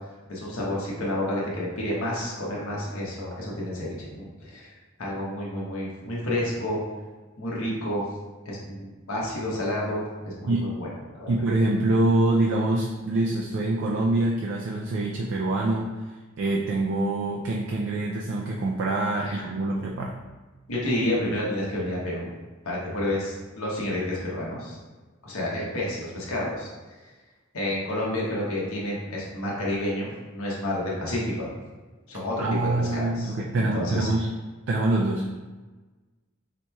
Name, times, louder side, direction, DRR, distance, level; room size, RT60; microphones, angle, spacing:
voice 1, 0.3-4.7 5.0-6.8 7.4-8.1 8.4-10.9 11.1-11.3 19.3-19.5 20.7-22.3 22.6-24.8 25.2-26.7 27.5-31.6 32.1-34.1, left 1 dB, 90° left, -5 dB, 0.9 m, -30 dB
voice 2, 11.3-15.9 16.4-20.2 32.4-34.3 34.7-35.3, right 2 dB, 60° right, -2 dB, 0.3 m, -25 dB
4.2 x 2.9 x 2.2 m, 1.3 s
head